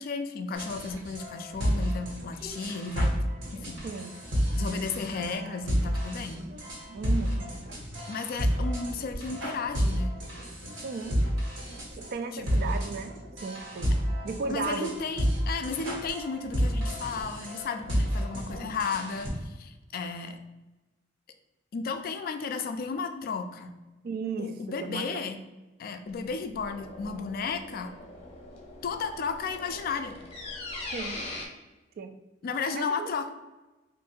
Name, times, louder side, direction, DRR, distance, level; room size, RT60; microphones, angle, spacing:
voice 1, 0.0-3.2 3.5-3.8 4.5-6.4 8.1-10.1 12.3-12.8 14.5-20.4 21.7-23.8 24.4-25.4 25.8-27.9 28.8-30.1 32.4-33.3, left 4 dB, 50° left, 8 dB, 0.3 m, -34 dB
sound 1, 0.5-19.3, equal, 75° right, 1.4 m, -31 dB
voice 2, 6.9-7.6 10.8-11.2 12.0-13.9 14.2-14.9 24.0-25.2 30.9-31.2 32.0-32.2 32.7-33.1, right 4 dB, 50° right, 8 dB, 0.3 m, -35 dB
sound 2, 26.1-31.5, left 2 dB, 35° left, 0.8 m, -41 dB
2.7 x 2.5 x 4.2 m, 1.1 s
head